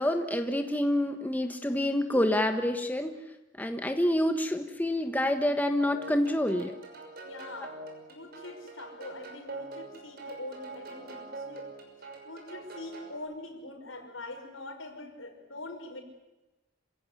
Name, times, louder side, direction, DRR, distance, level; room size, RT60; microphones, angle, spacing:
voice 1, 0.0-3.2 3.6-6.7, left 1 dB, 10° left, 6 dB, 1.3 m, -27 dB
sound 1, 5.8-13.2, right 3 dB, 50° right, 6.1 m, -44 dB
voice 2, 7.2-11.7 12.0-16.0, left 2 dB, 85° left, 3 dB, 5.7 m, -43 dB
27.0 x 17.0 x 9.9 m, 1.0 s
head